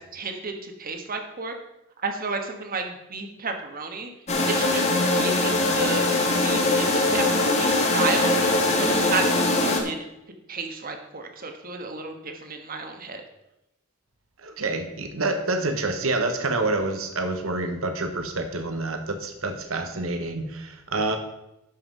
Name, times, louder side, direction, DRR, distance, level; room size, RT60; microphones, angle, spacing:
voice 1, 0.1-1.5 2.0-4.1 4.5-6.1 6.4-8.3 8.7-10.0 10.5-13.2, right 4 dB, 40° right, 5 dB, 1.4 m, -32 dB
sound 1, 4.3-9.8, left 2 dB, 30° left, 1.5 m, -22 dB
voice 2, 14.4-21.2, right 2 dB, 65° right, 6 dB, 1.1 m, -27 dB
11.5 x 5.6 x 5.4 m, 0.89 s
head